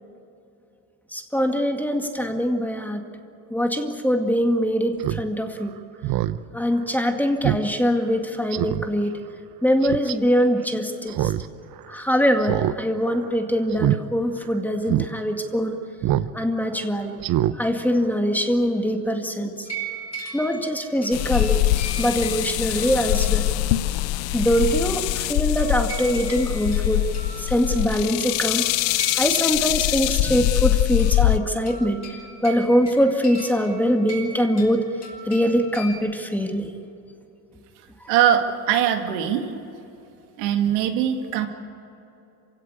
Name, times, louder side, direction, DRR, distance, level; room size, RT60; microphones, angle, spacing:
voice 1, 1.1-3.1 3.5-5.8 6.5-9.2 9.6-11.3 11.9-15.8 16.3-17.2 17.6-19.7 20.3-21.6 22.0-23.5 24.3-27.1 27.4-28.7 29.2-32.0 32.4-34.9 35.3-36.7, equal, 5° left, 4 dB, 2.1 m, -23 dB
Speech synthesizer, 5.0-5.2 5.6-5.7 6.0-6.4 6.8-6.9 7.4-7.6 8.0-8.1 8.5-8.9 9.8-10.1 11.1-11.5 11.7-11.8 12.4-12.8 13.0-13.3 13.7-14.0 14.4-14.5 14.9-15.1 16.0-16.3 16.6-16.8 17.2-17.5 17.9-18.0, right 13 dB, 50° right, 0.9 m, -24 dB
sound 1, 19.7-23.6 25.6-35.9, right 2 dB, 35° left, 5.6 m, -39 dB
sound 2, 21.1-31.4, left 16 dB, 70° left, 0.8 m, -23 dB
voice 2, 38.1-39.5 40.4-41.5, right 10 dB, 80° right, 4 dB, 2.4 m, -21 dB
27.0 x 17.0 x 8.4 m, 2.9 s
supercardioid pair, 100°, 46 cm